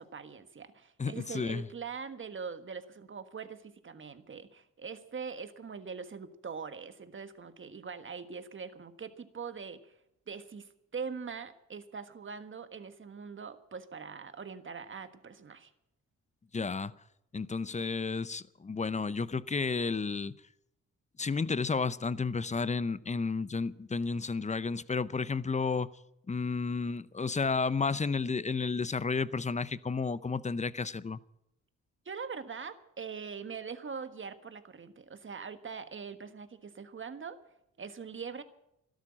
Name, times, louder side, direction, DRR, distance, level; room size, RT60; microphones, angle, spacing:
voice 1, 0.0-9.9 10.3-15.7 32.0-37.4 37.8-38.4, right 5 dB, 40° right, 1.5 m, -42 dB
voice 2, 1.0-1.7 16.5-16.9 17.3-20.3 21.2-25.9 26.3-31.2, left 4 dB, 25° left, 0.6 m, -32 dB
13.0 x 11.5 x 8.8 m
cardioid pair, 70°, 31 cm